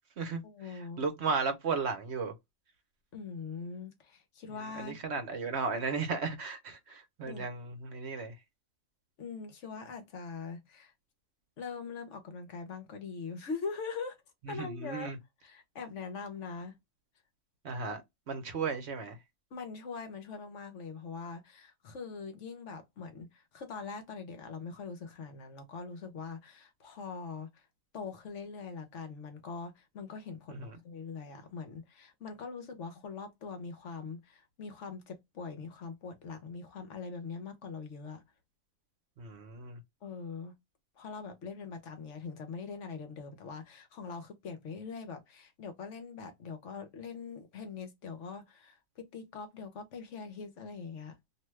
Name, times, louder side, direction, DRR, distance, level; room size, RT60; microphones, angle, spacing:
voice 1, 0.4-1.0 3.1-5.0 7.3-7.5 9.2-10.9 11.6-14.2 14.5-15.1 15.4-16.8 19.5-27.7 27.9-38.2 40.0-40.5 41.0-51.2, left 5 dB, 65° left, 1.1 m, -42 dB
voice 2, 1.0-2.3 4.7-8.3 14.5-15.1 17.6-18.0 18.3-19.2 30.5-30.7 39.2-39.8, right 4 dB, 60° right, 0.9 m, -35 dB
2.7 x 2.3 x 3.1 m
omnidirectional pair, 1.4 m